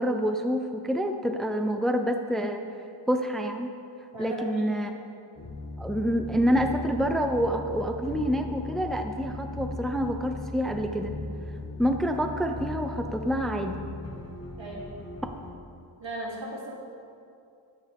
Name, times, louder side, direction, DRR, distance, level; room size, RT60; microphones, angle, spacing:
voice 1, 0.0-2.6 3.1-3.7 4.2-4.9 5.8-11.1 11.8-13.8, equal, ahead, 5 dB, 0.7 m, -27 dB
voice 2, 4.1-4.7 14.6-14.9 16.0-16.7, right 1 dB, 70° right, -4 dB, 3.2 m, -36 dB
sound 1, 5.4-15.5, left 2 dB, 35° left, 1.5 m, -38 dB
23.0 x 9.2 x 3.6 m, 2.5 s
wide cardioid pair, 85°, 47 cm